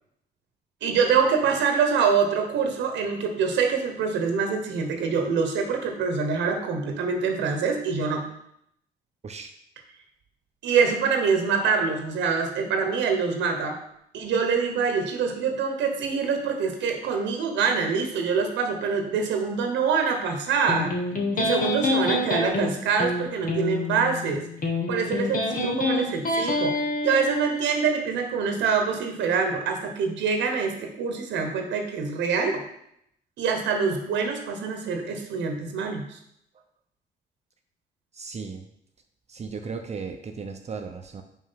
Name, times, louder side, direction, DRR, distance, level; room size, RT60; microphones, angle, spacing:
voice 1, 0.8-8.2 10.6-13.8 14.1-20.9 21.3-24.4 24.9-32.6 33.4-36.2, right 5 dB, 85° right, 4 dB, 1.1 m, -25 dB
Electric guitar, 20.7-27.7, left 2 dB, 50° left, 1.5 m, -27 dB
voice 2, 38.1-38.7 39.3-41.2, right 5 dB, 35° right, 5 dB, 0.7 m, -36 dB
5.5 x 4.9 x 5.7 m, 0.75 s
cardioid pair, 90°, 18 cm